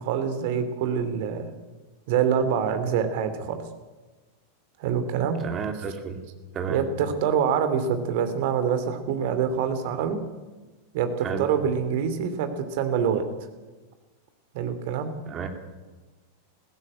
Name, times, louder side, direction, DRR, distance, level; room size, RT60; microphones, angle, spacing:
voice 1, 0.0-1.5 2.1-3.6 4.8-5.4 6.7-10.2 10.9-13.2 14.5-15.1, right 7 dB, 50° right, 9 dB, 2.7 m, -25 dB
voice 2, 5.4-6.2 6.5-6.8 11.2-11.5 15.3-15.5, right 6 dB, 25° right, 5 dB, 3.0 m, -31 dB
21.0 x 15.5 x 8.8 m, 1.2 s
figure-of-eight pair, 90°, 0 cm